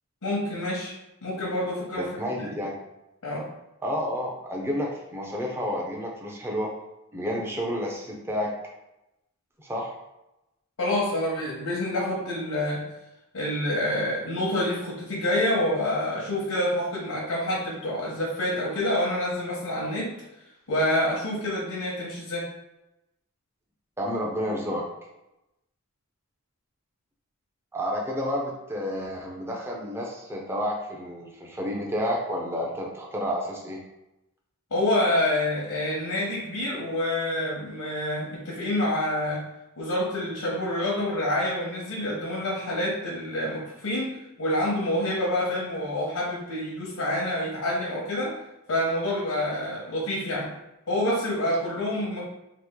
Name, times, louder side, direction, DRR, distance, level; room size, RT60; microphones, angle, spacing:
voice 1, 0.2-0.9 1.2-2.1 2.4-2.5 3.2-3.5 10.8-12.8 13.3-20.1 20.7-22.5 34.7-39.4 39.8-44.1 44.4-48.3 48.7-50.5 50.9-52.2, left 1 dB, 80° left, -5 dB, 0.9 m, -27 dB
voice 2, 1.9-2.7 3.8-6.7 7.1-8.5 9.6-9.9 24.0-24.9 27.7-33.8, equal, 10° right, -2 dB, 0.5 m, -30 dB
3.0 x 2.4 x 3.6 m, 0.94 s
head